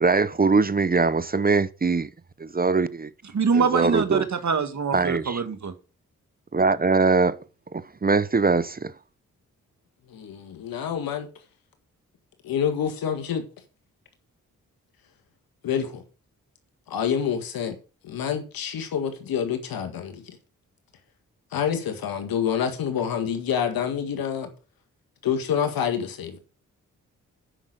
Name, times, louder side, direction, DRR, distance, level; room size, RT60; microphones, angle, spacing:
voice 1, 0.0-2.1 2.4-3.1 3.5-4.3 4.9-5.4 6.5-7.4 7.7-8.9, right 4 dB, 25° right, 0.7 m, -22 dB
voice 2, 3.3-5.7, right 5 dB, 55° right, 1.7 m, -24 dB
voice 3, 10.1-11.3 12.4-13.4 15.6-16.0 16.9-17.8 18.0-20.4 21.5-24.5 25.2-26.4, left 8 dB, 85° left, 1.8 m, -27 dB
9.0 x 6.1 x 6.5 m
supercardioid pair, 40°, 34 cm